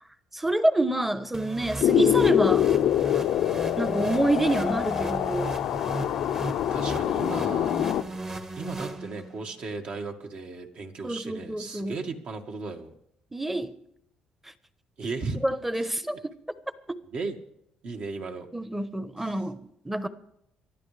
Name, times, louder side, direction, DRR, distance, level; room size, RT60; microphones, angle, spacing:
voice 1, 0.3-2.7 3.8-5.5 11.0-12.0 13.3-13.7 15.4-16.3 16.9-17.0 18.5-20.1, right 1 dB, 10° right, 1.0 m, -27 dB
sound 1, 1.3-9.5, right 2 dB, 25° right, 1.4 m, -36 dB
sound 2, 1.8-8.0, left 11 dB, 75° left, 0.6 m, -25 dB
voice 2, 6.6-7.9 8.6-12.9 15.0-15.4 17.1-17.4 17.8-18.5 19.2-19.4, right 4 dB, 55° right, 1.9 m, -36 dB
24.0 x 12.0 x 3.4 m
cardioid pair, 85°, 3 cm